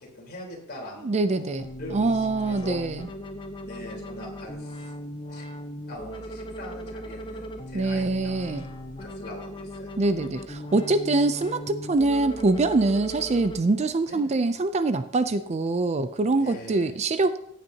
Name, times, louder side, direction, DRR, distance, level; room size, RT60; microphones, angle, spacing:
voice 1, 0.0-1.5 1.8-2.8 3.6-4.9 5.3-5.5 5.9-8.4 9.0-10.0 14.0-14.4 16.4-17.0, left 1 dB, 45° left, -1 dB, 3.8 m, -42 dB
voice 2, 1.0-3.1 7.7-8.7 10.0-17.4, right 2 dB, 30° right, 12 dB, 0.4 m, -24 dB
sound 1, 1.6-13.6, equal, 20° left, 0.9 m, -38 dB
16.0 x 8.9 x 2.8 m, 0.76 s
head